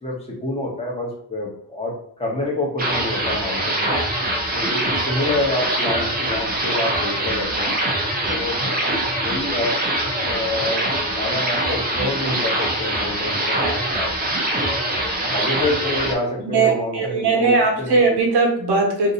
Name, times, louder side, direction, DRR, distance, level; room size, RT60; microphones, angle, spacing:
voice 1, 0.0-4.0 4.5-7.7 8.2-9.8 10.1-10.9 11.1-14.1 14.6-14.8 15.3-18.0, left 1 dB, 15° left, -2 dB, 0.8 m, -27 dB
sound 1, 2.8-16.1, right 1 dB, 20° right, 0.5 m, -23 dB
voice 2, 16.4-19.1, right 3 dB, 70° right, 1 dB, 1.0 m, -19 dB
2.7 x 2.6 x 3.8 m, 0.69 s
wide cardioid pair, 175°, 41 cm